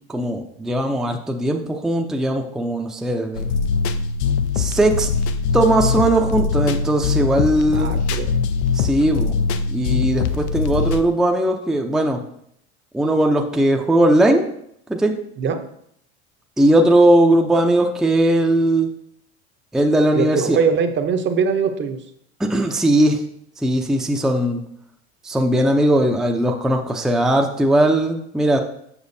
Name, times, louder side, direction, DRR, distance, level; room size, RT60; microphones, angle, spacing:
voice 1, 0.1-3.5 4.6-5.1 5.5-7.9 8.7-9.4 9.7-12.2 12.9-14.5 14.9-15.1 16.6-18.9 19.7-20.6 22.4-23.2 23.6-24.6 25.2-28.6, right 1 dB, ahead, 3 dB, 0.5 m, -18 dB
sound 1, 3.4-11.0, left 5 dB, 90° left, 0.6 m, -22 dB
voice 2, 7.7-8.3 15.4-15.6 20.1-22.0, right 6 dB, 35° right, 7 dB, 0.7 m, -21 dB
7.1 x 6.0 x 2.7 m, 0.72 s
supercardioid pair, 105°, 32 cm